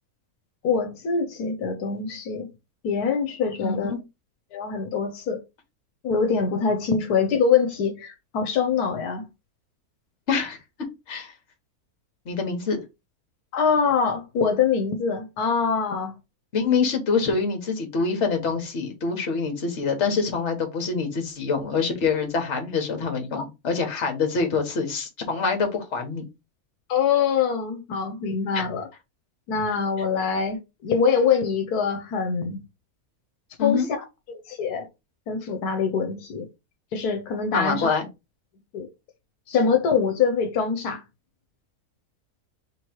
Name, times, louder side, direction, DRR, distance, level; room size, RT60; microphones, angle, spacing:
voice 1, 0.6-2.5 2.8-3.9 4.5-5.4 6.0-9.2 13.5-16.1 23.4-23.5 26.9-28.9 29.5-32.6 33.6-34.9 35.3-36.4 36.9-37.9 38.7-38.9 39.5-41.0, left 6 dB, 85° left, 1.3 m, -24 dB
voice 2, 3.6-4.0 10.3-10.6 11.1-11.3 12.2-12.8 16.5-26.2 28.5-28.7 33.6-33.9 37.5-38.1, left 5 dB, 50° left, 1.4 m, -25 dB
3.4 x 3.1 x 4.5 m
omnidirectional pair, 1.6 m